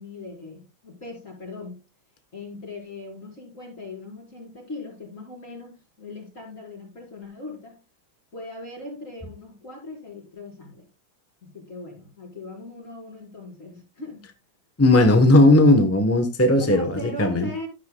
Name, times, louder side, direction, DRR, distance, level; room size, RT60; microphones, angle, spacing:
voice 1, 0.0-1.8 2.3-7.8 8.3-10.9 11.4-14.3 16.6-17.7, left 2 dB, 40° left, -2 dB, 5.2 m, -39 dB
voice 2, 14.8-16.9 17.2-17.5, left 1 dB, 15° left, 7 dB, 0.6 m, -16 dB
12.0 x 10.5 x 2.3 m, 0.28 s
omnidirectional pair, 2.1 m